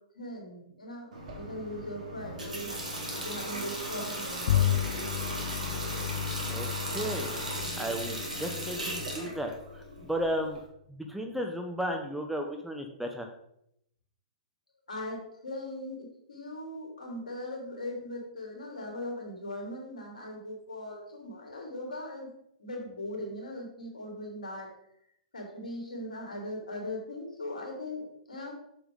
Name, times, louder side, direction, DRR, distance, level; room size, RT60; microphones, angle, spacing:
voice 1, 0.1-4.8 14.9-22.3 22.6-24.7 25.3-28.5, left 1 dB, 75° left, -1 dB, 3.1 m, -39 dB
Water / Water tap faucet, 1.1-9.1, right 1 dB, 65° right, 2.9 m, -41 dB
Water tap faucet, 2.2-10.6, right 1 dB, 85° right, 2.3 m, -38 dB
Bowed string instrument, 4.5-10.1, left 12 dB, 60° left, 0.4 m, -33 dB
voice 2, 6.9-7.3 7.8-10.6 10.9-13.3, equal, 5° right, 3 dB, 0.9 m, -34 dB
7.0 x 7.0 x 3.8 m, 0.74 s
figure-of-eight pair, 110°, 4 cm